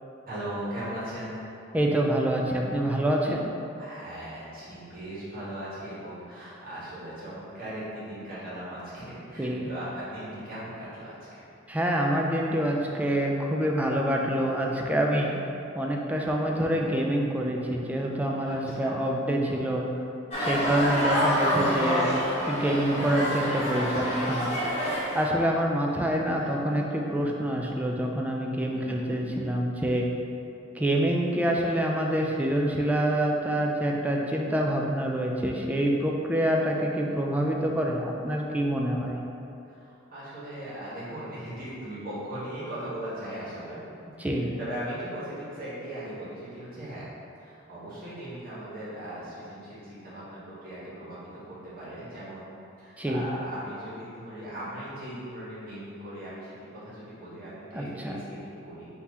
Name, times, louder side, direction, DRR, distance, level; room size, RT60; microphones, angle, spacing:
voice 1, 0.3-1.4 3.8-11.5 16.4-16.9 18.4-18.9 20.3-21.1 26.4-26.6 28.7-29.1 39.7-43.8 44.2-47.1 47.4-51.2 51.4-52.5 52.8-58.9, right 1 dB, 50° right, -10 dB, 1.5 m, -39 dB
voice 2, 1.7-3.5 9.4-9.7 11.7-15.4 15.7-19.8 20.4-22.1 22.5-24.5 25.1-30.1 30.8-39.2 44.2-44.5 53.0-53.2 57.7-58.2, right 1 dB, 10° right, -1 dB, 0.3 m, -26 dB
sound 1, 20.3-25.3, equal, 35° left, 1.0 m, -27 dB
3.7 x 3.0 x 4.1 m, 2.7 s
head